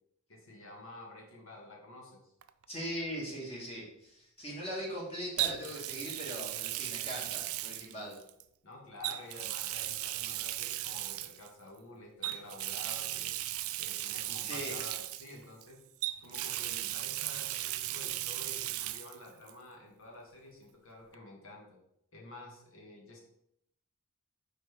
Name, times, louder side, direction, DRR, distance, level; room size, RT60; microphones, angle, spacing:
voice 1, 0.3-2.3 7.9-8.1 8.6-13.3 13.8-15.8 16.2-21.6 22.1-23.2, left 2 dB, 65° left, -1 dB, 1.7 m, -50 dB
Water tap faucet, 2.4-2.6 5.4-8.4 9.0-11.5 12.2-15.6 16.0-19.2 19.5-19.6 21.1-21.2, right 15 dB, 75° right, 0.4 m, -36 dB
voice 2, 2.7-8.2 14.4-14.7, equal, 25° left, -4 dB, 2.0 m, -40 dB
5.1 x 4.5 x 4.6 m, 0.77 s
head